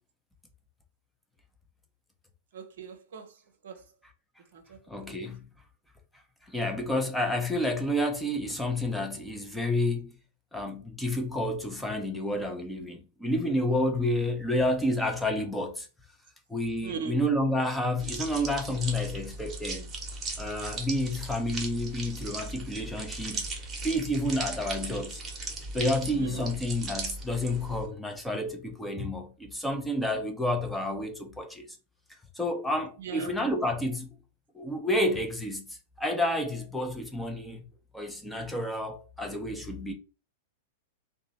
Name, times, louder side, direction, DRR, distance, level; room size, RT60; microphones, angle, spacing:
voice 1, 2.5-3.9 4.4-5.1 16.8-17.3 26.1-26.5 30.1-30.2 33.0-33.4, right 6 dB, 60° right, 0.7 m, -40 dB
voice 2, 4.9-5.5 6.5-10.1 10.5-15.9 16.5-19.9 20.4-25.2 25.7-31.6 32.4-34.1 34.5-35.6 36.0-37.6 37.9-39.9, left 1 dB, 5° left, 0.7 m, -30 dB
sound 1, 18.0-27.9, right 3 dB, 20° right, 1.0 m, -38 dB
3.0 x 2.2 x 3.9 m
figure-of-eight pair, 100°, 0 cm